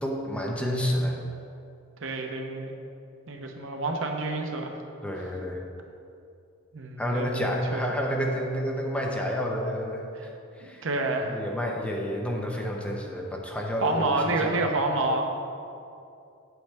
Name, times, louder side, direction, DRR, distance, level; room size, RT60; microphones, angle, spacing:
voice 1, 0.0-1.1 5.0-5.6 7.0-10.3 10.6-10.8 11.2-14.6, equal, 5° left, -1 dB, 0.8 m, -30 dB
voice 2, 2.0-2.7 3.3-4.7 6.7-8.1 10.1-10.2 10.6-11.4 13.8-15.3, right 2 dB, 60° right, 2 dB, 0.9 m, -28 dB
8.7 x 8.1 x 3.5 m, 2.6 s
head